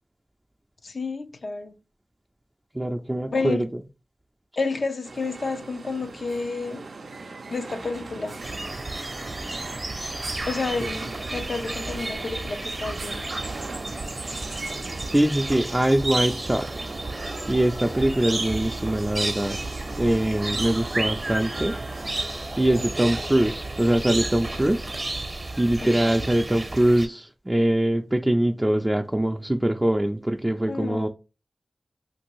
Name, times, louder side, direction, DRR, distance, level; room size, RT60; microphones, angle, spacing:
voice 1, 0.8-1.7 3.3-3.6 4.6-6.9 7.5-8.4 10.5-13.3 25.8-26.2 30.7-31.1, left 4 dB, 70° left, 0.5 m, -30 dB
voice 2, 2.7-3.8 15.1-16.8 17.5-19.6 19.9-21.8 22.6-24.9 25.6-31.1, right 1 dB, 20° right, 0.3 m, -23 dB
sound 1, 5.0-22.2, right 3 dB, 90° right, 0.4 m, -40 dB
sound 2, 8.4-27.1, right 2 dB, 50° right, 0.7 m, -32 dB
2.9 x 2.6 x 3.0 m
cardioid pair, 40°, 0 cm